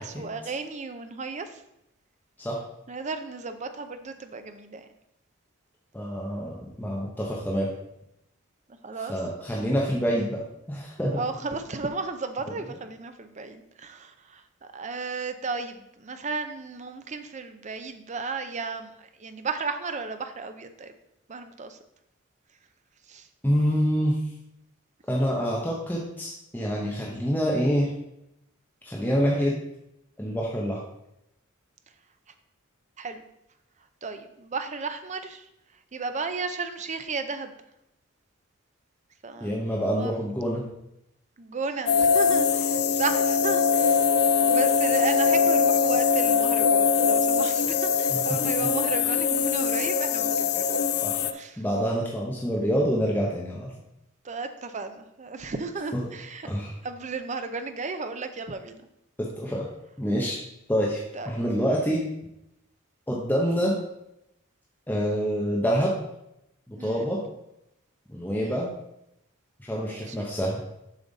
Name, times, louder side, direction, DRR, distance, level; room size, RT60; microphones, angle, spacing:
voice 1, 0.0-1.6 2.9-4.9 8.7-9.1 11.1-20.9 21.3-21.8 23.1-23.3 33.0-33.3 34.0-37.6 39.2-39.7 40.0-40.2 41.4-44.1 44.4-50.9 51.3-51.6 54.2-56.5 56.8-58.8 61.1-61.4 66.8-67.1 68.3-68.6 69.8-70.3, right 4 dB, 35° right, 9 dB, 0.6 m, -34 dB
voice 2, 5.9-7.7 9.1-10.4 10.7-11.2 23.4-24.2 25.1-27.9 28.8-29.5 30.2-30.8 39.4-40.6 48.1-48.2 51.0-51.3 51.6-53.7 56.4-56.7 59.2-59.7 60.0-60.4 60.7-62.0 63.1-63.8 64.9-65.9 66.7-67.2 68.1-68.7 69.6-70.6, equal, 10° left, -3 dB, 0.9 m, -26 dB
sound 1, 41.9-51.3, left 6 dB, 55° left, 0.4 m, -22 dB
7.2 x 5.7 x 4.0 m, 0.83 s
head